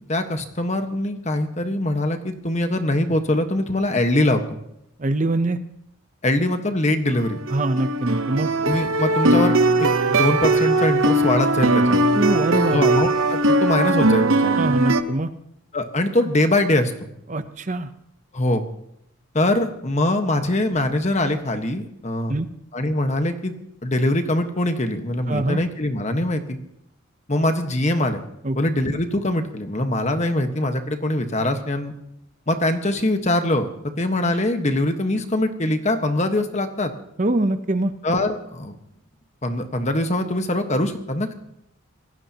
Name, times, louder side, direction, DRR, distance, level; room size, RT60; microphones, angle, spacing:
voice 1, 0.0-4.6 6.2-7.4 8.6-9.5 9.8-12.1 12.7-14.7 15.7-17.1 18.3-18.6 19.3-22.3 22.7-23.6 23.8-26.6 27.3-28.2 28.5-31.9 32.5-33.7 34.0-36.9 38.0-38.8 39.4-41.3, left 1 dB, 35° left, 6 dB, 1.4 m, -23 dB
voice 2, 5.0-5.6 7.5-8.5 12.1-12.8 14.6-15.3 17.3-17.9 22.3-22.5 25.3-25.6 28.4-28.6 37.2-37.9, right 2 dB, 35° right, 10 dB, 0.7 m, -23 dB
sound 1, 7.1-15.0, right 2 dB, 70° right, 1.0 m, -19 dB
26.0 x 17.5 x 2.9 m, 0.78 s
head